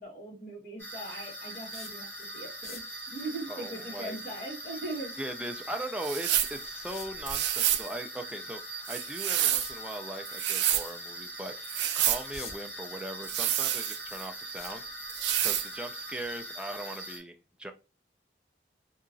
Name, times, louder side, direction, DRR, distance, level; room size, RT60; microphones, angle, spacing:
voice 1, 0.0-2.8 3.1-5.2, right 2 dB, 45° left, 1.4 m, -40 dB
sound 1, 0.8-17.2, right 1 dB, 10° left, 0.9 m, -42 dB
sound 2, 1.7-2.1 2.5-3.0 5.7-5.8 6.9-7.3 9.5-9.8 10.4-10.6 11.1-11.2 11.9-12.8 13.2-13.9 14.6-15.3 16.2-16.4 16.7-16.8, left 4 dB, 65° left, 0.8 m, -45 dB
voice 2, 3.5-4.2 5.2-14.9 15.4-17.7, right 1 dB, 5° right, 0.3 m, -39 dB
sound 3, 6.0-6.6 7.2-7.9 8.8-9.7 10.2-10.9 11.6-12.2 13.2-14.3 15.1-15.7, right 12 dB, 85° right, 0.3 m, -28 dB
2.8 x 2.4 x 2.5 m
head